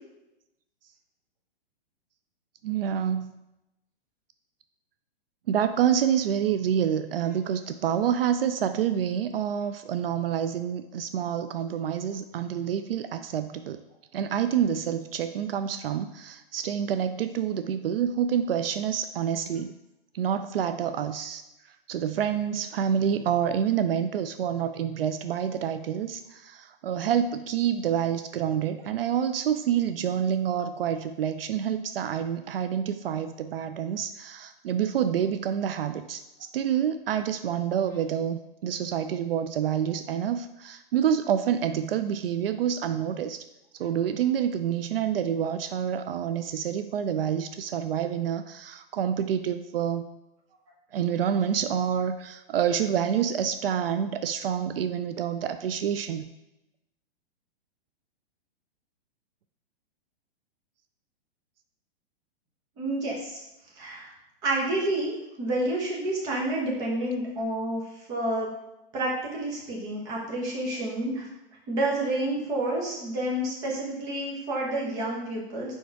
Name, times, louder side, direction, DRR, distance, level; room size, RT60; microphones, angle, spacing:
voice 1, 2.6-3.4 5.5-13.8 14.1-19.7 20.1-21.4 21.9-43.4 43.8-50.1 50.9-56.3, right 9 dB, 70° right, 10 dB, 0.4 m, -27 dB
voice 2, 62.8-63.4 63.8-64.1 64.4-65.1 65.4-67.8 68.1-68.5 68.9-71.3 71.7-75.7, right 1 dB, 10° right, -3 dB, 0.8 m, -29 dB
4.7 x 4.4 x 4.6 m, 0.92 s
hypercardioid pair, 175°, 30 cm